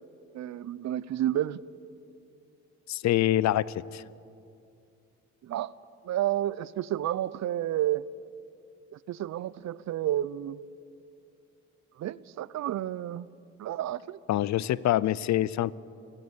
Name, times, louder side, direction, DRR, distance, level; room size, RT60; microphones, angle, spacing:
voice 1, 0.3-1.6 5.4-5.7 6.0-8.1 8.9-10.6 12.0-13.3 13.6-14.2, right 12 dB, 65° right, 0.6 m, -30 dB
voice 2, 2.9-3.6 3.9-4.0 14.3-15.7, left 13 dB, 65° left, 0.6 m, -25 dB
29.0 x 10.5 x 8.8 m
cardioid pair, 90°, 30 cm